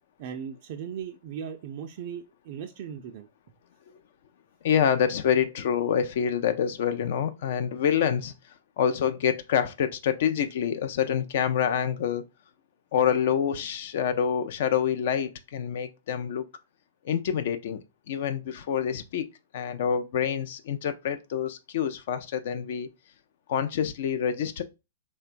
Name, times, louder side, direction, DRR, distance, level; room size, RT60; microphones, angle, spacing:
voice 1, 0.2-3.3, right 8 dB, 50° right, 0.3 m, -38 dB
voice 2, 4.6-8.3 8.8-12.2 12.9-16.4 17.0-17.8 18.1-19.3 19.5-22.9 23.5-24.6, left 8 dB, 60° left, 0.3 m, -26 dB
2.9 x 2.1 x 2.5 m
hypercardioid pair, 120°, 0 cm